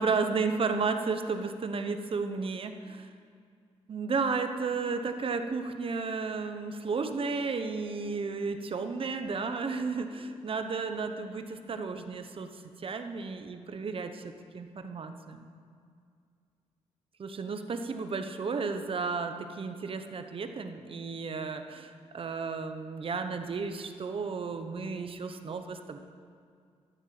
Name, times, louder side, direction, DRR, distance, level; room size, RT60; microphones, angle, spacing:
voice 1, 0.0-3.1 3.9-15.5 17.2-26.0, right 4 dB, 50° right, 7 dB, 1.1 m, -33 dB
13.0 x 8.2 x 7.7 m, 2.2 s
cardioid pair, 90°, 12 cm